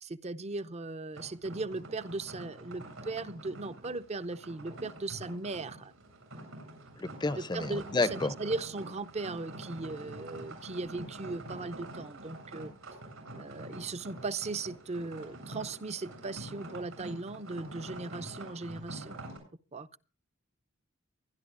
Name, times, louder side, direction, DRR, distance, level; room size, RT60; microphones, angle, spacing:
voice 1, 0.0-5.9 7.4-12.7 13.3-19.2 19.7-19.9, right 3 dB, 30° right, 0.6 m, -38 dB
sound 1, 1.1-19.4, right 1 dB, 90° right, 8.0 m, -46 dB
voice 2, 7.0-8.3, left 3 dB, 20° left, 0.6 m, -30 dB
23.5 x 11.5 x 2.5 m
head